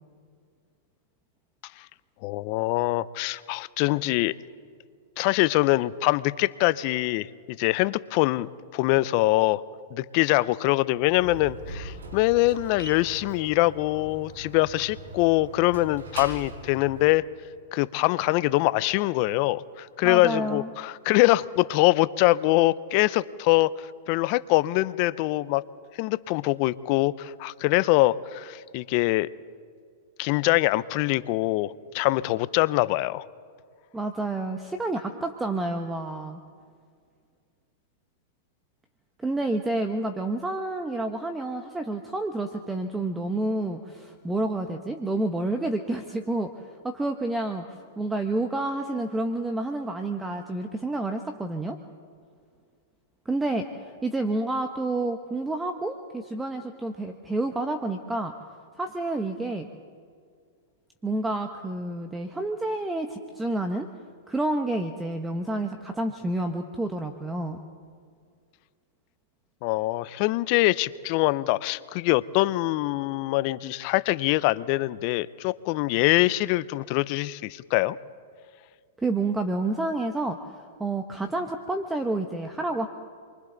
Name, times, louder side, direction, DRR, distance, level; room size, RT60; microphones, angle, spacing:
voice 1, 2.2-4.3 5.2-9.6 9.9-17.2 17.7-25.6 26.0-29.3 30.2-33.2 69.6-78.0, left 18 dB, 45° left, 17 dB, 0.7 m, -24 dB
Slam, 10.9-17.1, right 2 dB, 80° right, 4.9 m, -41 dB
voice 2, 20.0-20.7 33.9-36.4 39.2-46.5 46.8-47.7 48.0-51.8 53.2-58.3 58.8-59.7 61.0-63.9 64.3-67.6 79.0-82.9, right 2 dB, 10° right, 6 dB, 1.1 m, -29 dB
28.5 x 24.0 x 4.0 m, 2.1 s
hypercardioid pair, 130°, 0 cm